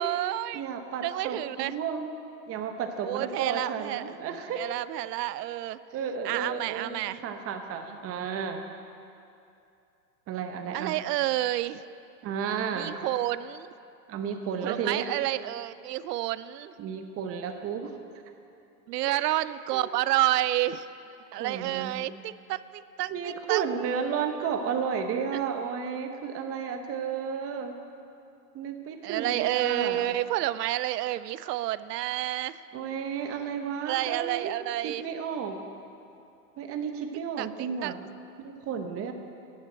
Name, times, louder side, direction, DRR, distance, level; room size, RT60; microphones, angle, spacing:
voice 1, 0.0-0.6 1.0-1.7 3.0-4.0 4.5-5.8 6.2-7.2 10.7-11.8 12.7-13.7 14.6-16.7 18.9-20.9 21.3-23.6 29.0-32.6 33.9-35.0 37.4-37.9, right 15 dB, 70° right, 16 dB, 0.6 m, -29 dB
voice 2, 0.5-2.1 2.5-4.6 5.9-6.9 7.2-8.6 10.3-11.0 12.2-12.9 14.1-15.0 16.8-17.9 19.1-19.4 19.7-19.9 21.3-22.0 23.1-27.7 28.5-30.0 32.7-34.5 34.8-35.6 36.6-38.0 38.4-39.1, right 7 dB, 30° right, 6 dB, 1.1 m, -32 dB
10.5 x 7.4 x 7.9 m, 2.6 s
hypercardioid pair, 120°, 50 cm